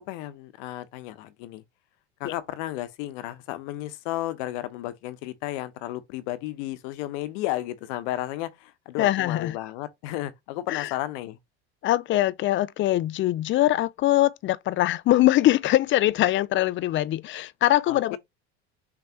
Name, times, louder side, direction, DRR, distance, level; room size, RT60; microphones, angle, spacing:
voice 1, 0.1-1.6 2.2-11.4 17.9-18.2, left 15 dB, 70° left, 0.9 m, -33 dB
voice 2, 9.0-9.6 10.7-10.9 11.8-18.2, left 15 dB, 35° left, 0.4 m, -22 dB
6.1 x 3.1 x 2.8 m
hypercardioid pair, 80°, 36 cm